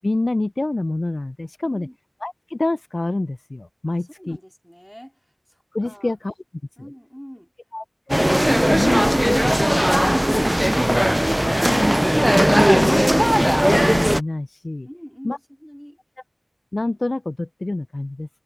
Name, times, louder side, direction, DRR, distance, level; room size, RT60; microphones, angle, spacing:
voice 1, 0.0-1.9 2.2-4.4 5.7-6.3 7.7-8.3 8.6-10.5 10.9-11.0 11.6-11.9 12.3-14.9 15.2-15.4 16.7-18.4, left 2 dB, 60° left, 0.3 m, -27 dB
voice 2, 1.6-2.0 3.9-6.1 6.8-7.5 14.8-16.0, equal, 5° left, 2.6 m, -43 dB
sound 1, 8.1-14.2, equal, 10° right, 0.4 m, -18 dB
wide cardioid pair, 40°, 0 cm